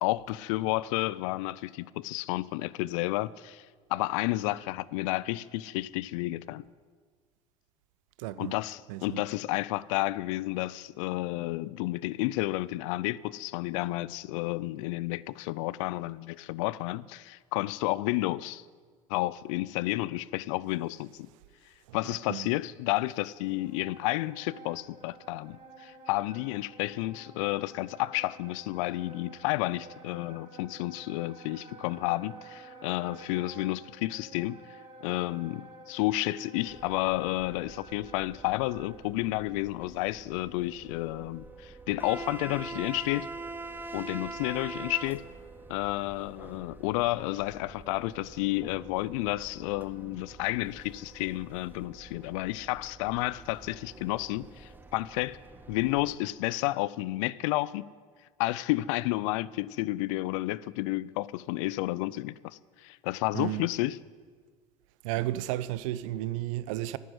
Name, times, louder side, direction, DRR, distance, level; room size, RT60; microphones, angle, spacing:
voice 1, 0.0-6.6 8.4-18.7 19.1-21.3 21.9-34.6 35.0-43.3 43.9-45.2 45.7-55.4 55.7-57.9 58.4-64.0, left 18 dB, 70° left, 0.5 m, -31 dB
voice 2, 8.2-8.6 8.9-9.2 21.9-22.5 63.3-63.7 65.0-67.0, right 14 dB, 70° right, 0.6 m, -33 dB
Wind instrument woodwind instrument, 23.5-39.0, right 3 dB, 35° right, 4.2 m, -51 dB
sound 1, 36.7-56.1, right 3 dB, 10° right, 1.2 m, -45 dB
12.0 x 9.4 x 9.8 m
hypercardioid pair, 75°, 17 cm